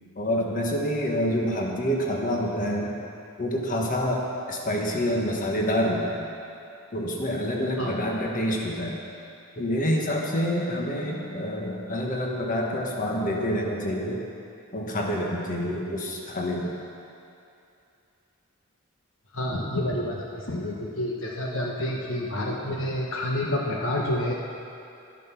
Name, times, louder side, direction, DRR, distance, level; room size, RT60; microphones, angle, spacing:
voice 1, 0.1-2.9 3.4-6.2 6.9-9.0 9.6-14.2 14.7-16.7, equal, 35° left, -1 dB, 1.5 m, -27 dB
voice 2, 19.3-24.3, left 1 dB, 60° left, -2 dB, 1.3 m, -29 dB
13.0 x 10.5 x 6.0 m, 2.7 s
head